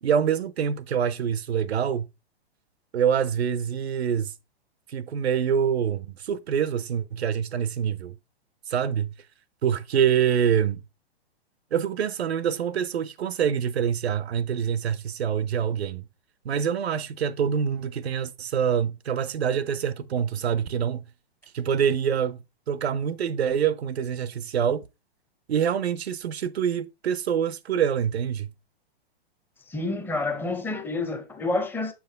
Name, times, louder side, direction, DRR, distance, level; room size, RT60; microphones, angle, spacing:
voice 1, 0.0-2.1 2.9-4.3 4.9-8.2 8.7-9.1 9.6-10.8 11.7-16.1 16.4-21.1 21.5-22.4 22.7-24.8 25.5-28.5, right 8 dB, 90° right, 0.7 m, -25 dB
voice 2, 29.7-31.9, left 2 dB, 5° left, 0.7 m, -28 dB
7.2 x 4.7 x 3.3 m
hypercardioid pair, 125°, 31 cm